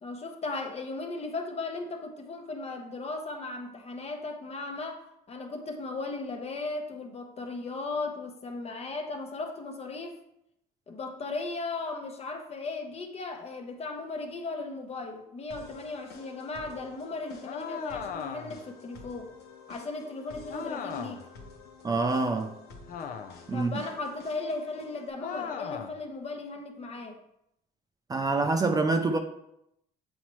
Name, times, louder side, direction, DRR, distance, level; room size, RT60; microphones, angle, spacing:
voice 1, 0.0-10.2 10.9-19.3 19.7-21.3 23.5-27.2, left 3 dB, 40° left, 0.9 m, -36 dB
sound 1, 15.5-25.1, left 4 dB, 75° left, 1.1 m, -50 dB
sound 2, 17.4-18.7 20.5-21.3 22.9-23.5 25.2-26.0, left 6 dB, 55° left, 0.6 m, -38 dB
voice 2, 21.8-22.6 23.5-23.8 28.1-29.2, right 3 dB, 20° right, 0.5 m, -26 dB
7.6 x 4.2 x 3.0 m
cardioid pair, 110°, 17 cm